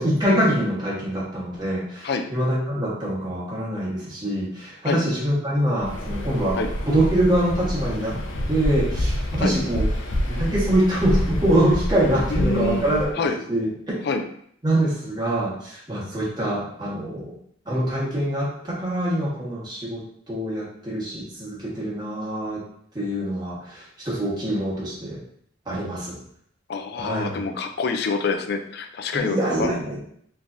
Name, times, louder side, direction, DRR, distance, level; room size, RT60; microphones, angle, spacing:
voice 1, 0.0-6.6 6.9-8.2 8.5-9.8 10.3-13.7 14.6-17.3 17.7-20.0 20.3-22.6 22.9-25.2 25.7-26.2 27.0-27.5 29.3-30.0, right 1 dB, 20° right, -7 dB, 1.3 m, -24 dB
Waves surf, 5.8-13.1, equal, 90° left, 0.7 m, -27 dB
voice 2, 12.3-12.8 13.1-13.4 14.0-14.2 26.7-29.7, left 4 dB, 60° left, 6 dB, 0.4 m, -26 dB
3.6 x 3.2 x 2.6 m, 0.66 s
head